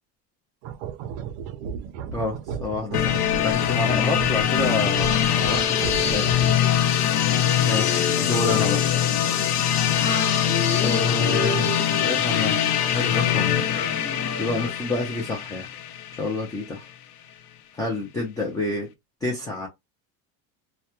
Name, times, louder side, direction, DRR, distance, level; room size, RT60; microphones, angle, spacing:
sound 1, 0.6-6.8, right 6 dB, 55° right, 0.5 m, -34 dB
voice 1, 2.1-6.3 7.6-8.9 10.8-13.6 14.4-15.7 16.1-16.9 17.7-18.9 19.2-19.7, left 2 dB, 10° left, 0.3 m, -29 dB
sound 2, 2.9-16.7, left 10 dB, 85° left, 0.6 m, -23 dB
sound 3, 3.7-14.7, left 4 dB, 30° left, 1.4 m, -33 dB
2.8 x 2.2 x 2.2 m
supercardioid pair, 140°, 44 cm